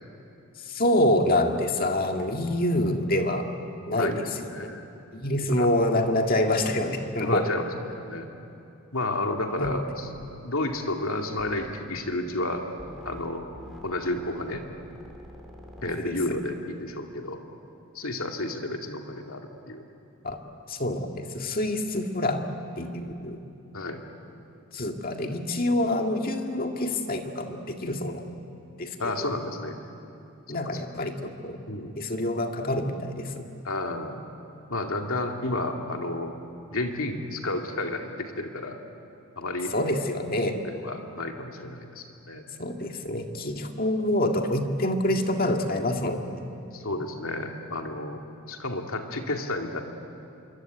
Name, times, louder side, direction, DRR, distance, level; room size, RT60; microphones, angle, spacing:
voice 1, 0.7-3.4 3.9-4.1 5.1-7.5 9.6-9.8 15.8-16.4 20.2-20.4 20.7-22.5 22.8-23.4 24.7-28.2 28.8-29.3 30.5-31.6 32.0-33.4 39.7-40.6 42.6-46.2, left 1 dB, 40° left, 3 dB, 2.0 m, -26 dB
voice 2, 4.5-4.9 5.5-6.0 6.5-6.6 7.2-8.3 8.9-10.1 10.4-12.7 13.0-13.5 13.8-14.6 15.8-17.4 17.9-19.8 23.7-24.0 29.0-29.8 30.7-30.9 31.7-31.9 33.6-34.2 34.7-36.3 36.7-38.8 39.4-39.7 40.6-42.4 46.7-48.2 48.5-49.8, left 2 dB, 75° left, 3 dB, 2.5 m, -31 dB
sound 1, 9.6-9.9 10.1-10.4 11.4-12.1 12.8-13.3 13.5-16.0, equal, ahead, 3.6 m, -46 dB
25.5 x 23.5 x 9.3 m, 2.7 s
head